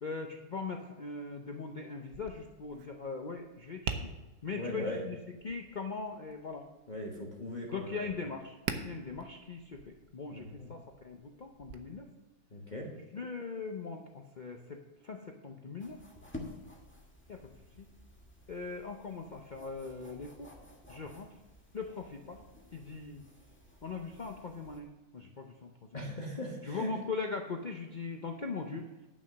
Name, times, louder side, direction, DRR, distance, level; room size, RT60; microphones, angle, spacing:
voice 1, 0.0-4.1 4.4-5.2 5.4-6.7 7.7-8.6 8.8-12.1 13.1-16.0 17.3-17.9 18.5-20.5 20.9-21.3 21.7-22.5 22.7-23.2 23.8-26.2 26.6-28.9, left 4 dB, 60° left, 3 dB, 0.4 m, -40 dB
Tap, 2.1-11.7, right 6 dB, 65° right, 1.2 m, -45 dB
voice 2, 4.6-5.0 6.9-8.1 10.3-10.7 12.5-12.9 25.9-26.9, left 1 dB, 30° left, -3 dB, 1.4 m, -39 dB
sound 1, 15.8-24.8, left 2 dB, 5° left, 1.4 m, -52 dB
11.0 x 6.1 x 6.1 m, 1.1 s
omnidirectional pair, 1.8 m